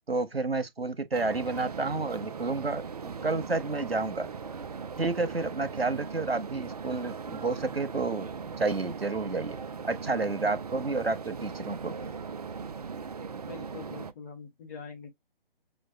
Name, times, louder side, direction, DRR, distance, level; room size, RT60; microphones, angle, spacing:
voice 1, 0.1-4.3 5.0-9.6 9.8-12.1, right 3 dB, 85° right, 0.9 m, -30 dB
sound 1, 1.1-14.1, right 5 dB, 45° right, 0.4 m, -39 dB
voice 2, 13.5-15.1, left 5 dB, 15° left, 0.7 m, -43 dB
6.2 x 2.2 x 2.2 m
figure-of-eight pair, 140°, 29 cm